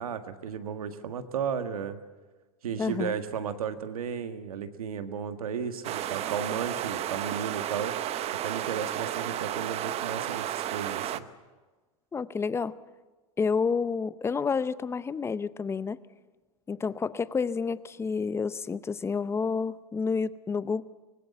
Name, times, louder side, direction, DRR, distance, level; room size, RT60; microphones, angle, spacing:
voice 1, 0.0-2.0 2.6-8.0 8.4-11.2, right 7 dB, 90° right, 8 dB, 1.7 m, -34 dB
voice 2, 2.8-3.2 12.1-12.8 13.4-16.0 16.7-20.8, left 5 dB, 15° left, 16 dB, 0.6 m, -29 dB
sound 1, 5.8-11.2, right 12 dB, 35° right, 0.9 m, -32 dB
24.5 x 19.0 x 7.2 m, 1.3 s
hypercardioid pair, 115°, 18 cm